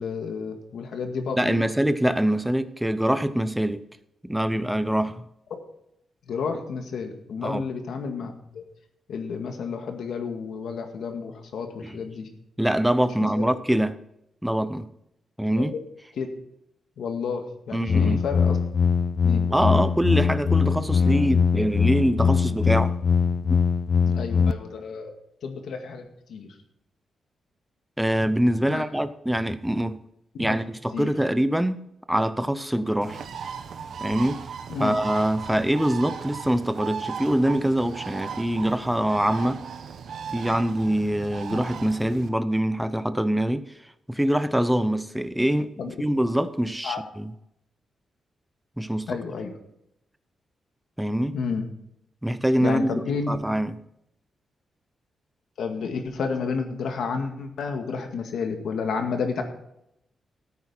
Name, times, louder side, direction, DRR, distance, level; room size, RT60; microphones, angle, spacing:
voice 1, 0.0-1.7 6.3-8.6 9.1-12.3 13.4-13.5 16.2-16.3 17.0-18.6 19.2-19.5 24.1-26.5 28.7-28.8 30.3-30.6 30.9-31.1 34.7-35.0 41.5-41.6 45.8-45.9 46.8-47.0 49.1-49.5 51.3-51.7 52.6-53.4 55.6-59.4, left 5 dB, 75° left, 5 dB, 2.0 m, -31 dB
voice 2, 1.4-3.8 4.2-5.2 7.4-7.6 11.8-11.9 12.6-14.0 14.4-14.9 15.4-15.7 17.7-18.2 19.5-22.9 23.5-23.6 28.0-30.0 30.4-31.8 32.1-33.3 34.0-34.4 34.8-39.6 40.3-43.7 44.1-47.3 48.8-49.2 51.0-51.4 52.2-53.8, right 1 dB, 5° right, 12 dB, 0.6 m, -24 dB
sound 1, 17.9-24.5, left 6 dB, 50° left, 0.4 m, -22 dB
Bird, 33.0-42.3, right 6 dB, 70° right, 1.0 m, -37 dB
13.5 x 9.1 x 4.4 m, 0.79 s
wide cardioid pair, 130°, 0 cm